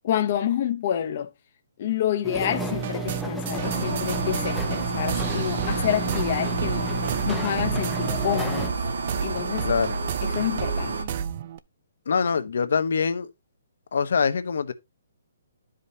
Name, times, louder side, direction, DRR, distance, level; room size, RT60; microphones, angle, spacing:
voice 1, 0.0-1.3 1.8-6.9 7.2-8.7 9.2-9.7 10.2-11.0, left 10 dB, 35° left, 0.9 m, -28 dB
sound 1, 2.2-8.7, right 1 dB, ahead, 0.7 m, -32 dB
sound 2, 2.7-11.6, right 8 dB, 35° right, 0.5 m, -32 dB
sound 3, 3.6-11.0, right 3 dB, 75° right, 1.6 m, -30 dB
voice 2, 9.6-10.0 12.1-13.3 13.9-14.7, left 5 dB, 65° left, 1.0 m, -24 dB
12.0 x 5.1 x 2.8 m
hypercardioid pair, 170°, 0 cm